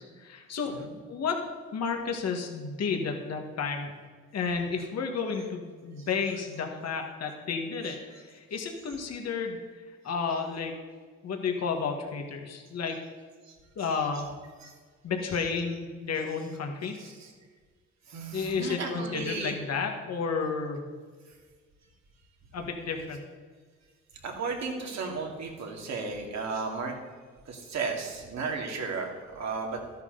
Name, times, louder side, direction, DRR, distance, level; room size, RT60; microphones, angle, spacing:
voice 1, 0.0-0.8 1.1-1.4 1.7-3.9 4.3-9.6 10.0-10.7 11.2-13.0 13.8-14.3 15.0-17.0 18.3-20.8 22.5-23.2, left 5 dB, 55° left, 3 dB, 1.9 m, -32 dB
voice 2, 7.8-8.2 13.5-13.6 13.9-14.1 14.6-14.7 15.3-15.4 16.9-17.3 18.1-19.6 24.2-26.9 27.5-29.8, right 4 dB, 65° right, 1 dB, 2.5 m, -35 dB
13.0 x 10.5 x 4.0 m, 1.5 s
cardioid pair, 90°, 30 cm